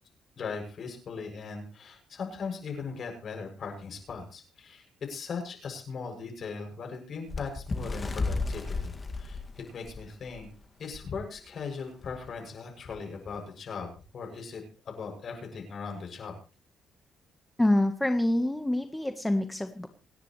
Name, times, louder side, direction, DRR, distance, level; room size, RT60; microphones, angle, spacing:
voice 1, 0.4-9.4 9.7-10.5 10.8-16.3, left 5 dB, 55° left, 2 dB, 7.4 m, -39 dB
Bird, 7.3-10.5 10.9-11.1 11.4-11.6 12.4-12.5, left 3 dB, 25° left, 2.2 m, -33 dB
voice 2, 17.6-19.9, left 1 dB, 10° left, 6 dB, 1.4 m, -26 dB
28.0 x 10.5 x 3.3 m, 0.35 s
cardioid pair, 90°, 0 cm